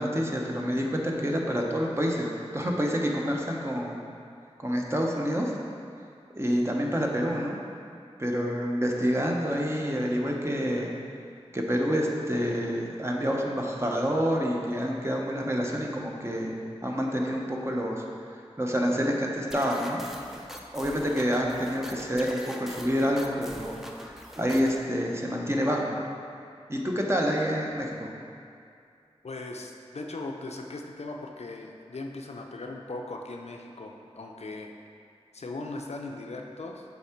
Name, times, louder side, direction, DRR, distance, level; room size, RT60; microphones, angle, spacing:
voice 1, 0.0-4.0 4.6-5.5 6.3-7.6 8.2-10.9 11.5-18.0 18.3-20.0 20.7-26.0 26.7-28.1, equal, 25° right, -1 dB, 0.9 m, -28 dB
sound 1, 19.5-24.8, equal, 5° right, 0.6 m, -44 dB
voice 2, 29.2-34.7 35.3-36.8, left 2 dB, 70° left, 2 dB, 0.5 m, -38 dB
7.1 x 3.7 x 4.4 m, 2.4 s
wide cardioid pair, 45°, 12 cm